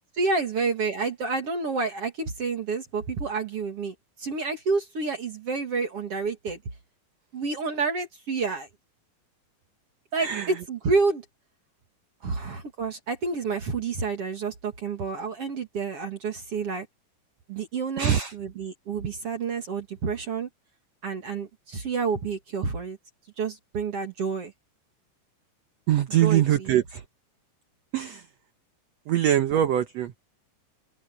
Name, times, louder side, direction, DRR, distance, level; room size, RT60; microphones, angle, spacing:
voice 1, 0.1-6.6 7.3-8.7 10.1-11.2 12.2-16.9 17.5-20.5 21.0-23.0 23.4-24.5 26.2-26.8, right 4 dB, 45° right, 2.8 m, -29 dB
voice 2, 18.0-18.3 25.9-27.0 27.9-28.2 29.1-30.1, right 11 dB, 70° right, 1.7 m, -23 dB
open air
omnidirectional pair, 4.0 m